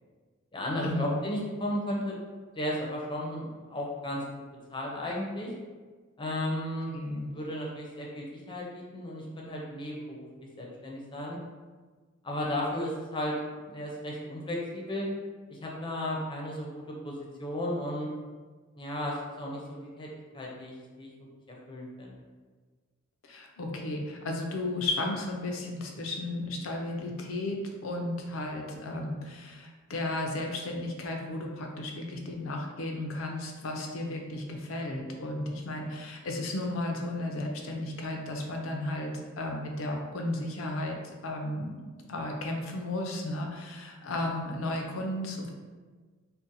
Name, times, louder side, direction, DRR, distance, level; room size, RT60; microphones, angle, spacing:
voice 1, 0.5-2.2 2.5-4.2 4.7-5.5 6.2-6.9 7.2-11.4 12.2-15.1 15.5-18.1 18.8-20.1 20.3-21.1 21.5-22.2 44.2-44.3, left 1 dB, 25° left, -3 dB, 0.6 m, -34 dB
voice 2, 6.9-7.3 23.2-45.5, left 2 dB, 70° left, 1 dB, 0.5 m, -34 dB
2.6 x 2.1 x 3.9 m, 1.4 s
head